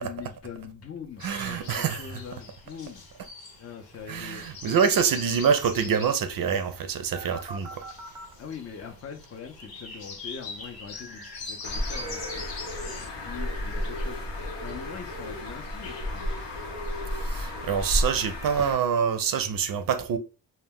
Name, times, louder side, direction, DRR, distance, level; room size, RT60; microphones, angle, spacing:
voice 1, 0.0-3.0 3.6-4.5 8.4-12.5 12.9-14.2 14.6-16.4, left 6 dB, 35° left, 0.5 m, -42 dB
sound 1, 1.2-13.1, left 3 dB, 60° left, 0.8 m, -42 dB
voice 2, 1.2-2.0 4.1-7.8 17.2-20.2, right 7 dB, 55° right, 0.5 m, -26 dB
sound 2, 7.1-8.3 10.9-11.4 11.9-14.0 14.9-18.5, right 1 dB, 10° right, 0.6 m, -45 dB
Bird, 11.6-18.7, left 1 dB, 85° left, 0.8 m, -32 dB
2.1 x 2.1 x 3.4 m
cardioid pair, 60°, 42 cm